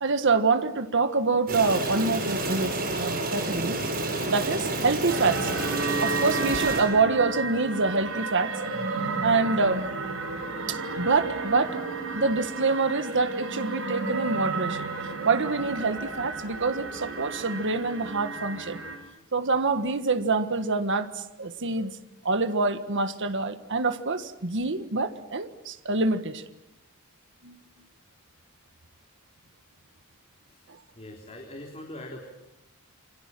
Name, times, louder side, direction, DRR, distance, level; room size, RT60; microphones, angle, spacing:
voice 1, 0.0-3.8 4.3-5.5 6.0-8.5 9.2-9.9 10.7-11.8 12.1-14.9 15.2-18.8 19.3-22.0 22.3-26.4 27.4-27.6, right 3 dB, 60° right, 10 dB, 1.6 m, -26 dB
sound 1, 1.5-6.8, right 2 dB, 45° right, 7.5 m, -29 dB
Space Shuttle, 5.1-18.9, right 3 dB, 75° right, 7.6 m, -32 dB
voice 2, 31.0-32.2, left 1 dB, 30° left, 2 dB, 3.5 m, -41 dB
28.5 x 25.0 x 7.6 m, 0.92 s
head